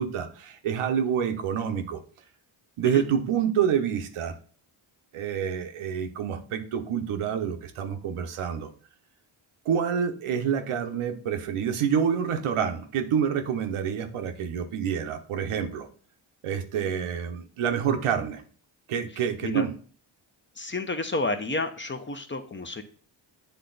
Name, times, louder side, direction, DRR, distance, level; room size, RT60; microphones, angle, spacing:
voice 1, 0.0-2.0 2.8-4.3 5.1-8.7 9.6-15.9 16.4-18.4 18.9-19.7, right 8 dB, 80° right, 6 dB, 0.9 m, -27 dB
voice 2, 20.6-22.8, left 2 dB, 25° left, 8 dB, 0.8 m, -30 dB
8.1 x 3.4 x 3.9 m, 0.42 s
cardioid pair, 60°, 49 cm